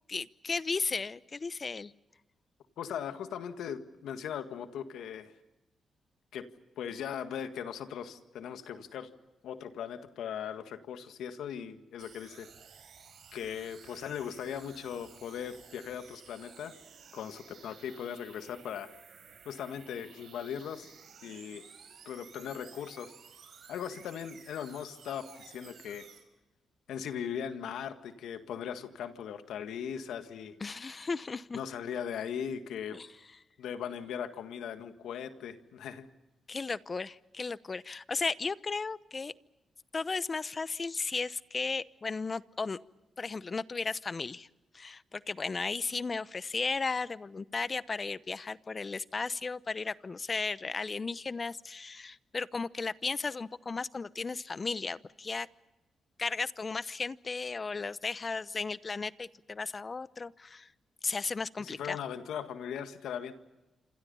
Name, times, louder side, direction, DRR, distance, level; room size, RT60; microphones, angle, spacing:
voice 1, 0.1-1.9 30.6-31.6 32.9-33.1 36.5-39.3 39.9-42.8 43.2-44.5 44.7-55.5 56.2-60.7 61.0-62.0, left 4 dB, 40° left, 17 dB, 0.8 m, -35 dB
voice 2, 2.8-5.3 6.3-6.5 6.8-9.1 9.4-12.5 13.3-16.8 17.1-18.9 19.4-20.9 21.2-21.7 22.0-23.1 23.7-26.1 26.9-30.6 31.5-33.0 33.6-36.1 61.6-63.3, left 8 dB, 85° left, 8 dB, 1.7 m, -39 dB
sound 1, 12.0-26.2, right 6 dB, 70° right, 5.6 m, -54 dB
27.5 x 26.5 x 5.6 m, 1.0 s
cardioid pair, 65°, 0 cm